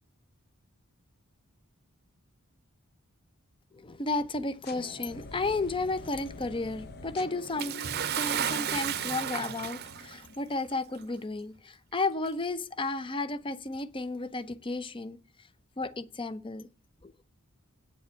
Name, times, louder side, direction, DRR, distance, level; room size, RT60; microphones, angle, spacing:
voice 1, 3.7-7.8 8.2-15.2 15.8-16.7 17.0-17.1, left 3 dB, 25° left, 0.6 m, -33 dB
sound 1, 4.6-10.6, left 2 dB, 45° left, 0.9 m, -46 dB
Bathtub (filling or washing) / Splash splatter, 7.6-10.2 11.1-11.2 12.2-12.3, right 9 dB, 45° right, 0.7 m, -32 dB
8.6 x 7.0 x 8.0 m
head